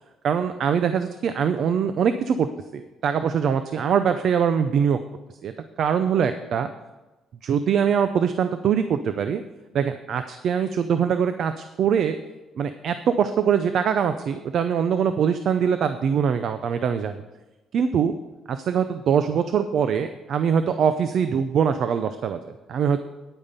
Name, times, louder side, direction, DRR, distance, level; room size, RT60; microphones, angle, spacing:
voice 1, 0.2-2.5 2.7-5.0 5.4-5.5 5.8-6.7 7.4-9.4 9.7-12.2 12.6-17.2 17.7-18.1 18.5-23.0, right 7 dB, 50° right, 10 dB, 0.5 m, -23 dB
10.0 x 8.8 x 5.5 m, 1.1 s
cardioid pair, 170°, 0 cm